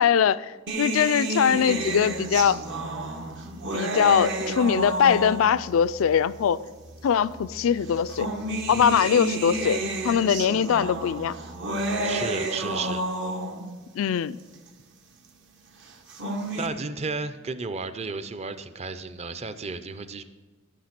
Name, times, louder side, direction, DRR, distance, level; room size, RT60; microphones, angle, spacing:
voice 1, 0.0-2.6 3.7-6.6 7.0-8.3 8.7-11.4 14.0-14.4, left 8 dB, 80° left, 17 dB, 0.3 m, -22 dB
sound 1, 0.7-5.8 6.7-6.8 7.9-13.8 15.9-16.7, right 2 dB, 65° right, 1.1 m, -30 dB
sound 2, 1.5-12.1, right 1 dB, 80° right, 2.5 m, -48 dB
voice 2, 8.7-9.1 12.0-13.0 16.5-20.2, right 4 dB, 35° right, 11 dB, 0.5 m, -33 dB
13.0 x 5.9 x 5.9 m, 1.3 s
head